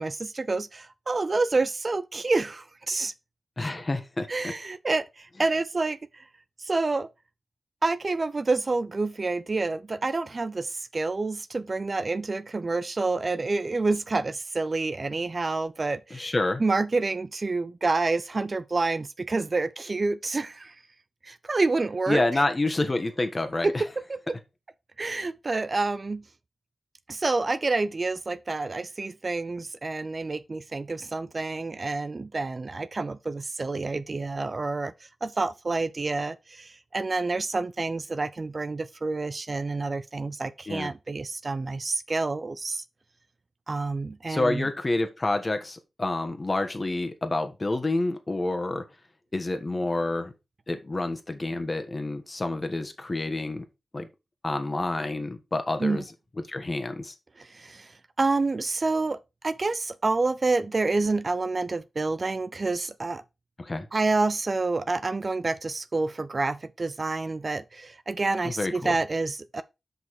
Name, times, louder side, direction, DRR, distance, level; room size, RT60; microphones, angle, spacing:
voice 1, 0.0-3.1 4.3-6.3 6.6-7.1 7.8-16.3 16.6-20.8 21.2-22.4 23.6-23.7 24.1-24.3 25.0-26.2 27.1-42.8 43.7-44.7 55.8-56.0 57.4-59.2 59.4-63.2 63.9-69.6, right 3 dB, 45° right, 0.5 m, -28 dB
voice 2, 3.6-4.5 16.1-16.6 22.1-23.8 40.7-40.9 44.3-48.8 49.3-50.3 50.7-53.6 53.9-54.1 54.4-56.0 56.5-57.1 63.6-63.9 68.4-68.9, left 2 dB, 35° left, 1.4 m, -28 dB
6.4 x 5.4 x 4.8 m
wide cardioid pair, 75°, 0 cm